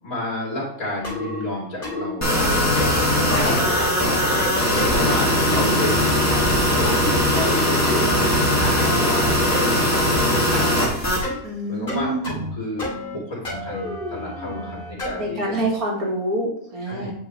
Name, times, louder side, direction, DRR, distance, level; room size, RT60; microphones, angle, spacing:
voice 1, 0.0-2.6 3.0-3.9 4.7-6.2 6.7-8.3 8.6-10.8 11.7-15.6 16.8-17.1, left 1 dB, 70° left, -5 dB, 3.1 m, -31 dB
sound 1, 1.0-1.4 1.8-2.1 2.4-3.0 3.4-3.7 4.4-4.9 5.5-5.8 6.3-6.6 6.8-7.6 7.8-8.5 8.8-9.7 10.5-10.7 11.2-11.4 11.9-12.5 12.8-13.2 13.4-15.2, equal, 35° left, 2.9 m, -30 dB
sound 2, 2.2-11.2, left 1 dB, 10° left, 1.8 m, -20 dB
voice 2, 4.8-5.1 11.4-12.4 15.2-17.1, right 1 dB, 80° right, -1 dB, 2.2 m, -26 dB
8.4 x 5.1 x 3.2 m, 0.70 s
omnidirectional pair, 1.5 m